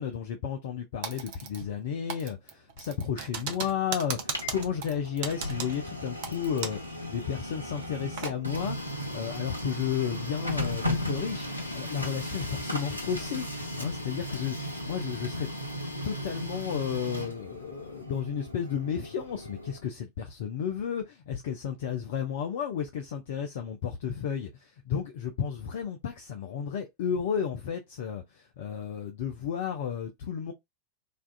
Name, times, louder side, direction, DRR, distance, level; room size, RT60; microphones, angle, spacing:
voice 1, 0.0-15.5 16.0-30.5, left 8 dB, 55° left, 0.4 m, -33 dB
Typing, 1.0-1.8 2.1-6.9 7.2-7.3 7.8-8.4, right 6 dB, 50° right, 0.6 m, -37 dB
Printer, 4.0-19.8, left 1 dB, 90° right, 0.6 m, -36 dB
2.4 x 2.3 x 2.2 m
figure-of-eight pair, 90°, 0 cm